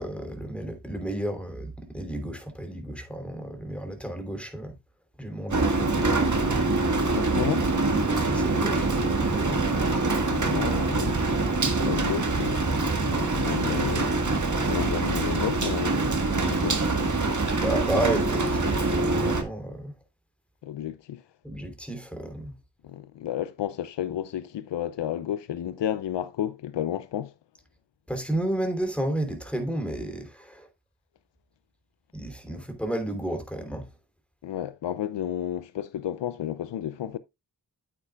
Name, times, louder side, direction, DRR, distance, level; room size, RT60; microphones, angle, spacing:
voice 1, 0.0-4.7 5.2-6.1 8.1-9.6 10.2-10.6 17.6-19.9 21.4-22.5 28.1-30.7 32.1-33.9, right 1 dB, 5° left, 3.2 m, -32 dB
Rain, 5.5-19.4, right 3 dB, 45° right, 1.7 m, -25 dB
voice 2, 7.1-7.7 10.3-11.3 11.8-14.2 14.7-16.0 16.4-16.9 20.6-21.2 22.8-27.3 34.4-37.2, left 11 dB, 90° left, 0.6 m, -32 dB
8.8 x 8.8 x 2.3 m
cardioid pair, 50°, 42 cm